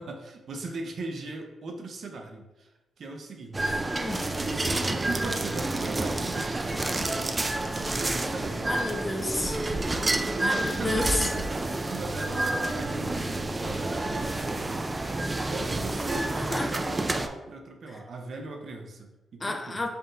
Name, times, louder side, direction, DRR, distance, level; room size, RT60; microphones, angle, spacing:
voice 1, 0.0-2.7 3.0-3.8 4.4-8.9 9.5-9.9 10.3-11.5 11.8-13.2 13.6-14.7 15.5-19.9, right 3 dB, 65° right, 3 dB, 0.6 m, -39 dB
sound 1, 3.5-17.3, right 2 dB, 30° right, 0.3 m, -29 dB
voice 2, 3.9-4.3 8.6-9.6 10.4-11.3 16.5-16.7 19.4-19.9, left 2 dB, 30° left, 1 dB, 0.7 m, -30 dB
5.6 x 2.7 x 2.5 m, 1.0 s
cardioid pair, 60°, 0 cm